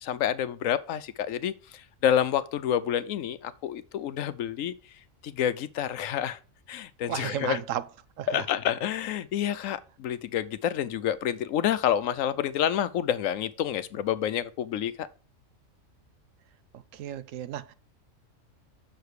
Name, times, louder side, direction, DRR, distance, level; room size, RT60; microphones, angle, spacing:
voice 1, 0.0-4.7 5.2-6.4 6.7-7.6 8.3-15.1, left 10 dB, 80° left, 1.0 m, -28 dB
voice 2, 7.1-7.8 8.2-8.5 16.7-17.7, right 11 dB, 80° right, 1.0 m, -34 dB
6.5 x 4.8 x 6.5 m
omnidirectional pair, 1.4 m